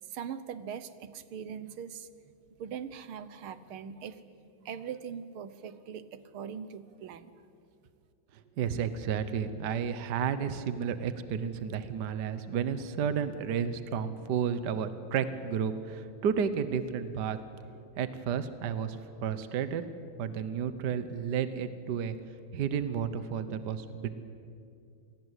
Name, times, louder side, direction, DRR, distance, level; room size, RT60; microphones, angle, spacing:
voice 1, 0.0-2.1 2.6-4.2 4.7-7.4, right 7 dB, 80° right, 13 dB, 1.9 m, -41 dB
voice 2, 8.6-17.4 18.0-19.8 20.2-22.2 22.5-24.1, right 7 dB, 55° right, 12 dB, 1.6 m, -32 dB
27.0 x 20.0 x 8.2 m, 2.5 s
omnidirectional pair, 2.3 m